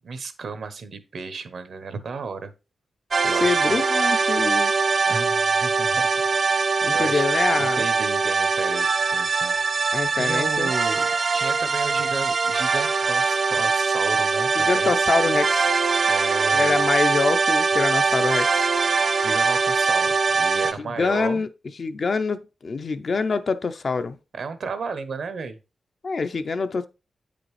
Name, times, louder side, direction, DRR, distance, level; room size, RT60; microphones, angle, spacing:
voice 1, 0.0-2.5 3.2-3.8 5.1-6.1 6.5-6.6 6.9-7.2 7.6-11.1 11.3-14.9 16.0-16.9 19.2-21.4 24.3-25.6, right 4 dB, 70° right, 0.8 m, -34 dB
sound 1, 3.1-20.7, right 4 dB, 50° right, 0.4 m, -22 dB
voice 2, 3.3-4.7 6.8-7.8 9.9-10.7 14.6-15.7 16.5-18.7 20.8-21.5 21.8-24.2 26.0-26.9, left 4 dB, 50° left, 0.5 m, -25 dB
8.7 x 5.1 x 3.2 m
wide cardioid pair, 115°, 0 cm